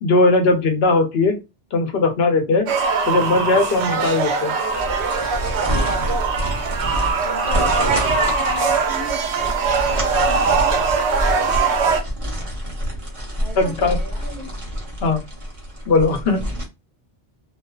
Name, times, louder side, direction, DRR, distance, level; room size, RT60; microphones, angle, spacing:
voice 1, 0.0-1.4 1.7-2.7 3.1-4.5 11.8-11.9 13.6-14.0 15.0-15.2 15.9-16.5, left 3 dB, 75° left, 0.9 m, -18 dB
sound 1, 2.7-12.0, right 5 dB, 90° right, 0.9 m, -21 dB
sound 2, 4.7-16.6, equal, 35° right, 0.9 m, -27 dB
voice 2, 7.1-11.1 13.4-14.5, left 1 dB, 35° left, 1.2 m, -36 dB
2.5 x 2.2 x 2.2 m
omnidirectional pair, 1.1 m